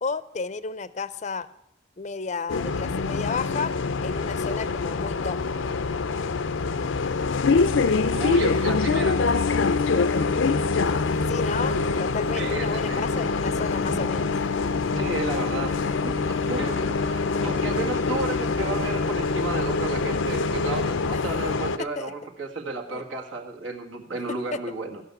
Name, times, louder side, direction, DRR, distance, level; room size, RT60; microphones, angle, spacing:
voice 1, 0.0-1.5 2.0-3.7 4.0-5.4 11.3-14.3 15.9-16.5 21.1-21.2 21.8-22.1 22.9-23.0 24.3-24.6, left 4 dB, 40° left, 16 dB, 0.5 m, -32 dB
Bus, 2.5-21.8, left 4 dB, 90° left, 0.6 m, -25 dB
voice 2, 8.1-9.2 12.3-13.0 15.0-15.7 16.0-25.0, right 3 dB, 85° right, 2 dB, 1.9 m, -33 dB
sound 1, 11.0-16.6, right 2 dB, 65° right, 1.7 m, -41 dB
15.5 x 6.0 x 8.3 m, 0.82 s
head